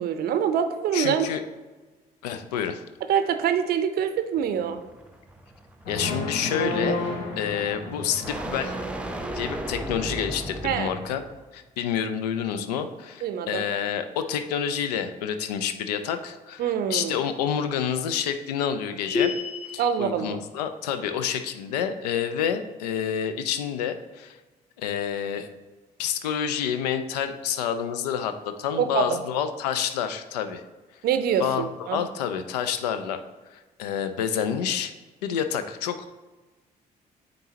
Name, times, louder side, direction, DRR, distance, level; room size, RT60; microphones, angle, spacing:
voice 1, 0.0-1.3 3.1-4.8 10.6-10.9 13.2-13.7 16.6-17.2 19.8-20.4 28.8-29.2 31.0-32.0, right 8 dB, 50° right, 9 dB, 0.5 m, -25 dB
voice 2, 0.9-1.4 2.2-2.8 5.9-7.0 7.4-8.8 9.3-11.2 11.5-19.3 19.7-24.4 24.8-25.5 26.0-30.6 31.4-31.6 31.9-33.2 33.8-34.9 35.2-36.0, left 8 dB, 75° left, 9 dB, 0.4 m, -28 dB
sound 1, 4.4-11.4, right 1 dB, 5° right, 0.7 m, -36 dB
sound 2, 5.9-8.9, left 1 dB, 60° left, 1.2 m, -31 dB
sound 3, 19.1-19.9, left 5 dB, 40° left, 1.2 m, -27 dB
8.9 x 3.9 x 2.8 m, 1.2 s
figure-of-eight pair, 45°, 21 cm